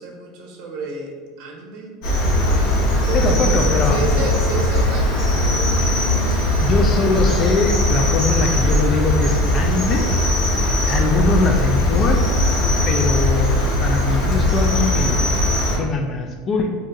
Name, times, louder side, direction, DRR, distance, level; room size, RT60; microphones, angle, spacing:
voice 1, 0.0-6.6 10.7-11.1, right 3 dB, 60° right, 0 dB, 0.7 m, -32 dB
Cricket, 2.0-15.8, left 1 dB, 60° left, 1.0 m, -19 dB
voice 2, 3.1-4.0 6.6-10.1 10.9-12.2 12.9-15.4 15.7-16.7, left 3 dB, 35° left, 3 dB, 0.4 m, -22 dB
2.6 x 2.4 x 3.8 m, 1.5 s
supercardioid pair, 120°, 0 cm